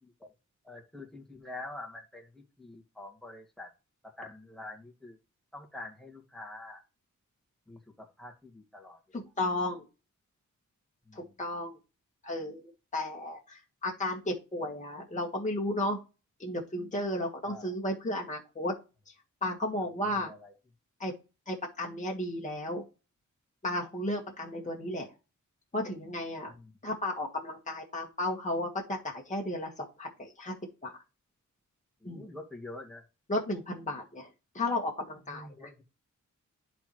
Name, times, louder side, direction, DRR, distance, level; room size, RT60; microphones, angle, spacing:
voice 1, 0.6-3.7 4.0-5.2 5.5-6.8 7.7-9.0 11.1-11.4 17.4-17.7 20.2-20.5 26.5-26.7 32.0-33.0 35.3-35.8, left 2 dB, ahead, 2.1 m, -46 dB
voice 2, 9.1-9.8 11.1-11.8 12.2-16.0 16.4-18.7 19.4-20.3 21.0-21.1 21.5-22.8 23.6-25.1 25.7-26.5 26.8-30.6 30.8-31.0 32.0-32.3 33.3-34.3 34.5-35.7, left 1 dB, 25° left, 1.6 m, -34 dB
11.0 x 4.6 x 3.1 m
wide cardioid pair, 90°, 31 cm